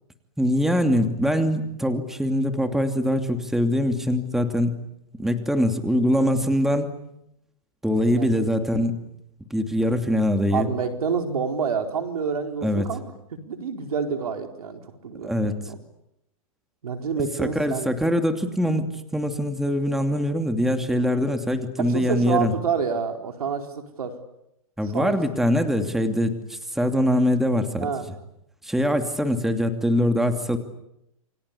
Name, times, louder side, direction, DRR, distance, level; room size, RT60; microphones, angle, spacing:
voice 1, 0.4-4.8 5.2-6.9 7.8-9.0 9.5-10.7 12.6-12.9 15.2-15.5 17.2-22.5 24.8-27.9 28.6-30.6, equal, ahead, 6 dB, 2.7 m, -23 dB
voice 2, 10.5-13.0 13.5-15.8 16.8-17.9 21.8-24.1 24.9-25.1 27.8-28.0, right 6 dB, 85° right, 5 dB, 4.5 m, -28 dB
28.5 x 25.0 x 8.5 m, 0.81 s
hypercardioid pair, 130°, 18 cm